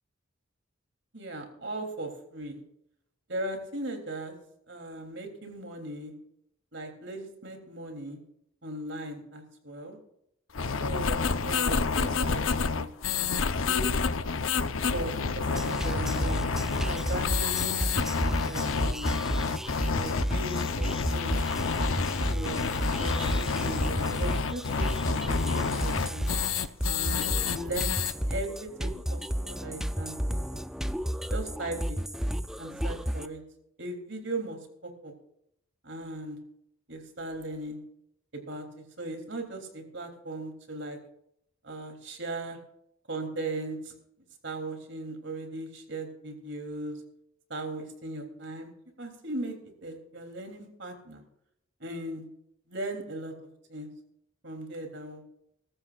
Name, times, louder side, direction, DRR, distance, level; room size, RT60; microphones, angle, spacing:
voice 1, 1.1-2.6 3.3-4.3 4.7-6.1 6.7-8.2 8.6-10.0 10.8-13.9 14.9-16.4 16.8-17.9 18.4-19.1 19.9-21.4 22.2-26.3 26.8-28.0 28.3-30.6 31.3-32.0 32.6-33.4 33.8-35.1 35.8-36.4 36.9-37.8 38.3-41.0 41.6-42.6 43.1-43.9 44.4-47.0 47.5-48.7 49.0-49.6 49.8-51.2 51.8-52.2 52.7-53.3 53.7-53.9 54.4-55.2, right 2 dB, 65° right, 3 dB, 3.2 m, -38 dB
sound 1, 10.5-28.1, left 5 dB, 85° left, 0.8 m, -29 dB
sound 2, 15.5-33.3, equal, ahead, 0.4 m, -32 dB
21.5 x 13.5 x 2.5 m, 0.76 s
head